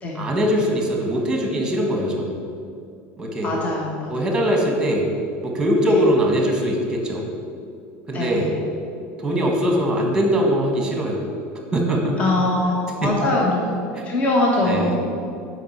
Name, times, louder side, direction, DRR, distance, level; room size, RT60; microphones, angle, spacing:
voice 1, 0.1-2.3 3.2-3.5 4.1-5.1 5.4-7.3 8.1-8.5 9.2-11.2 11.7-12.3 13.0-13.1 13.9-14.0 14.6-14.9, equal, 10° right, 0 dB, 1.4 m, -21 dB
voice 2, 3.4-4.1 8.1-8.5 12.2-13.6 14.0-15.0, left 2 dB, 25° left, -2 dB, 1.1 m, -22 dB
7.2 x 5.3 x 7.3 m, 2.5 s
cardioid pair, 170°, 6 cm